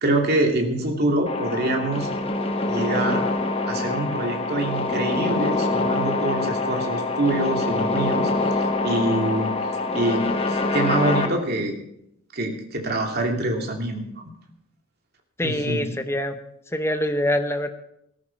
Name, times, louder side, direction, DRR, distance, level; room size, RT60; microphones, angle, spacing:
voice 1, 0.0-2.1 2.6-3.2 3.6-8.3 8.8-9.5 9.9-11.8 12.3-14.3 15.4-15.8, right 1 dB, 50° right, 2 dB, 2.6 m, -25 dB
sound 1, 1.3-11.3, left 2 dB, 25° left, 1.3 m, -25 dB
voice 2, 15.4-16.4 16.7-17.7, left 1 dB, 10° left, 7 dB, 0.9 m, -24 dB
17.0 x 13.5 x 4.6 m, 0.79 s
head